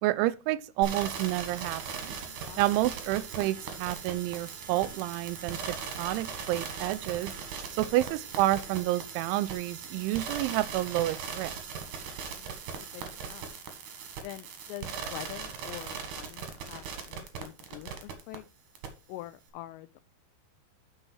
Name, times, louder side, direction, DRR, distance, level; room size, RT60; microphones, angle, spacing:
voice 1, 0.0-2.2 2.6-7.3 7.7-11.6, right 16 dB, 85° right, 2.8 m, -29 dB
sound 1, 0.8-18.4 18.7-18.9, right 6 dB, 60° right, 2.4 m, -39 dB
voice 2, 2.2-2.6 12.4-13.6 14.2-18.4 19.1-19.9, left 15 dB, 85° left, 2.5 m, -45 dB
8.9 x 6.2 x 4.6 m
omnidirectional pair, 5.5 m